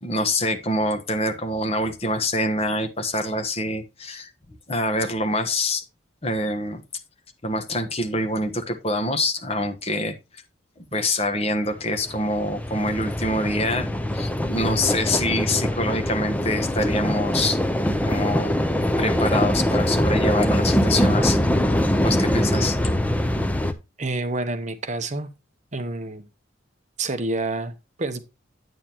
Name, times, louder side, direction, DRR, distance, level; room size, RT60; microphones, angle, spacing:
voice 1, 0.0-4.3 4.7-5.8 6.2-6.8 7.4-10.1 10.8-13.9 14.1-17.6 18.0-18.6 19.0-21.5 22.0-22.8, left 1 dB, 30° left, 1.3 m, -25 dB
sound 1, 11.8-23.7, equal, 10° left, 0.7 m, -23 dB
voice 2, 24.0-25.3 25.7-26.2 27.0-28.2, right 2 dB, 35° right, 0.9 m, -28 dB
9.1 x 8.8 x 3.0 m
head